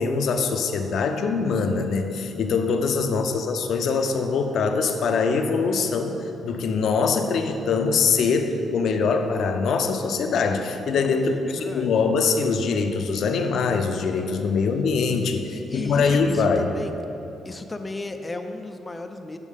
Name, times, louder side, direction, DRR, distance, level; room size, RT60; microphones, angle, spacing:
voice 1, 0.0-6.2 6.4-16.7, left 4 dB, 65° left, 6 dB, 0.6 m, -23 dB
voice 2, 3.0-3.5 11.1-11.9 15.1-16.9 17.4-19.4, left 2 dB, 20° left, 7 dB, 0.4 m, -36 dB
8.2 x 6.1 x 3.6 m, 2.9 s
cardioid pair, 90°, 0 cm